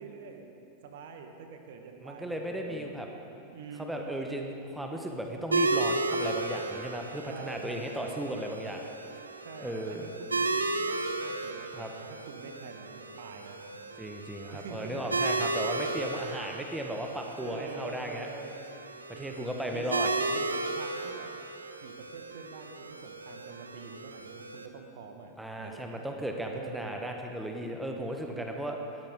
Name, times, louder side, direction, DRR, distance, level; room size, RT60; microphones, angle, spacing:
voice 1, 0.0-4.2 7.3-8.5 9.4-10.1 10.4-13.9 14.5-15.4 17.4-18.6 19.1-21.3 21.8-27.0, right 5 dB, 55° right, 5 dB, 1.4 m, -46 dB
voice 2, 2.0-3.1 3.8-8.8 9.6-10.1 11.7-11.9 14.0-18.3 19.1-20.1 25.4-28.8, right 1 dB, 5° right, 2 dB, 1.4 m, -36 dB
sound 1, 5.5-24.7, right 2 dB, 80° right, 0.7 m, -34 dB
20.0 x 13.0 x 3.8 m, 2.7 s
figure-of-eight pair, 90°, 0 cm